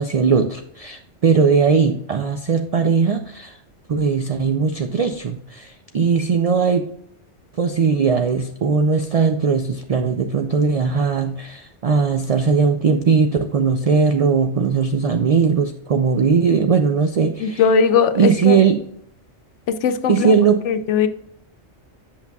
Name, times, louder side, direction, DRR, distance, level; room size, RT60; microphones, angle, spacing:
voice 1, 0.0-3.6 3.9-6.9 7.6-17.6 18.2-18.8 20.1-20.6, right 5 dB, 70° right, 6 dB, 0.3 m, -19 dB
voice 2, 17.4-18.6 19.8-20.3 20.7-21.1, left 6 dB, 85° left, 10 dB, 1.0 m, -18 dB
8.2 x 5.8 x 2.3 m, 0.71 s
omnidirectional pair, 1.2 m